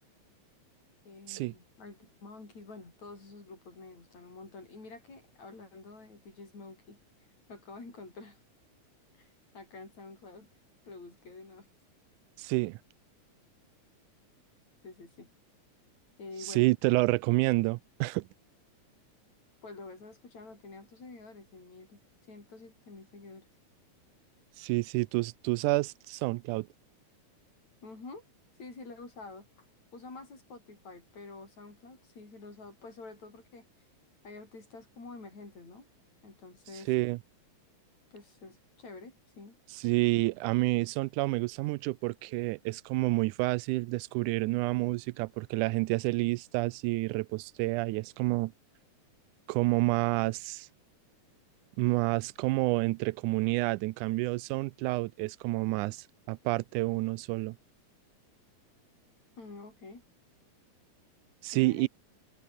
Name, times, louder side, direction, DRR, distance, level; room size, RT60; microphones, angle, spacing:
voice 1, 1.1-7.0 7.5-8.4 9.1-10.5 10.8-11.7 14.8-15.3 16.2-16.6 19.6-22.0 22.3-23.5 27.8-28.3 28.6-29.5 29.9-33.7 34.2-35.9 36.2-36.9 38.1-39.6 59.4-60.0 61.5-61.9, left 3 dB, 65° left, 8.8 m, -48 dB
voice 2, 12.4-12.8 16.4-18.3 24.6-26.7 36.9-37.2 39.7-48.5 49.5-50.7 51.8-57.6 61.4-61.9, right 21 dB, 85° right, 2.0 m, -29 dB
omnidirectional pair, 3.5 m